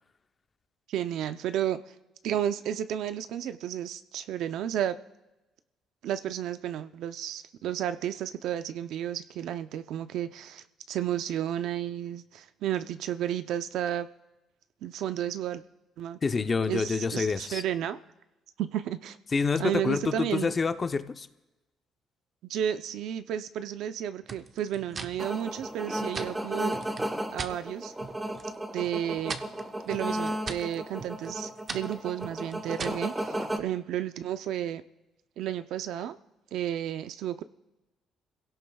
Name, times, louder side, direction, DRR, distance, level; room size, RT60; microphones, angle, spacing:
voice 1, 0.9-1.8 2.2-5.0 6.0-14.1 14.8-15.6 16.0-16.2 16.7-18.0 18.6-19.2 19.6-20.5 22.5-26.8 27.3-27.9 28.7-29.4 29.8-34.8 35.4-36.2 36.5-37.4, right 10 dB, 75° right, 11 dB, 0.6 m, -32 dB
voice 2, 16.2-17.6 19.3-21.3, left 4 dB, 30° left, 10 dB, 0.7 m, -27 dB
sound 1, 24.3-27.6 28.0-28.6 28.8-33.1, right 4 dB, 35° right, 0.8 m, -41 dB
sound 2, 25.2-33.6, right 1 dB, 10° right, 1.1 m, -34 dB
28.5 x 16.5 x 2.3 m, 1.0 s
cardioid pair, 125°, 0 cm